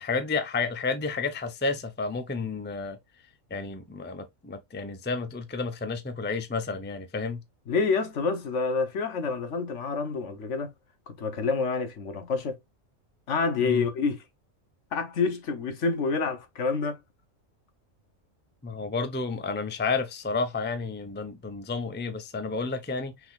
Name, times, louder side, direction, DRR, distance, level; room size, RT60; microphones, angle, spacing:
voice 1, 0.0-3.0 3.5-7.4 13.6-13.9 18.6-23.1, left 4 dB, 10° left, 0.5 m, -31 dB
voice 2, 7.7-10.7 11.1-12.6 13.3-14.2 14.9-17.0, left 4 dB, 65° left, 1.2 m, -28 dB
6.0 x 3.7 x 2.4 m
omnidirectional pair, 1.4 m